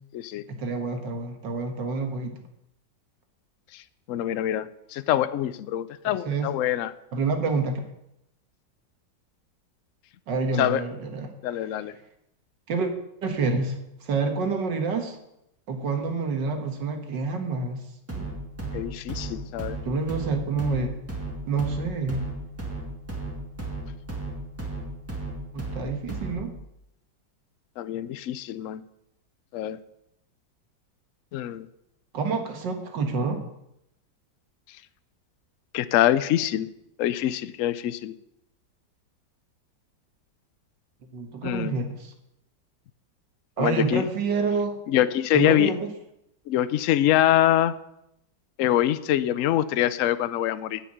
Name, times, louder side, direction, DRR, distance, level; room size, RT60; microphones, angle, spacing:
voice 1, 0.5-2.4 6.0-6.5 7.1-7.8 10.3-11.3 12.7-12.9 13.2-15.2 15.7-17.8 18.2-18.3 18.6-18.7 19.8-20.9 21.5-22.3 25.5-26.5 32.1-33.4 41.1-42.1 43.6-44.8 45.3-45.9, right 4 dB, 70° right, 5 dB, 2.1 m, -28 dB
voice 2, 4.1-6.9 10.6-10.8 11.4-12.0 18.7-19.8 27.8-28.8 29.5-29.8 31.3-31.7 35.7-36.7 37.0-38.1 41.4-41.8 43.6-44.1 44.9-45.7 46.5-47.7 48.6-50.8, left 12 dB, 80° left, 14 dB, 0.7 m, -24 dB
sound 1, 18.1-26.6, right 2 dB, 10° right, 1.8 m, -35 dB
10.0 x 6.0 x 8.6 m, 0.81 s
omnidirectional pair, 2.0 m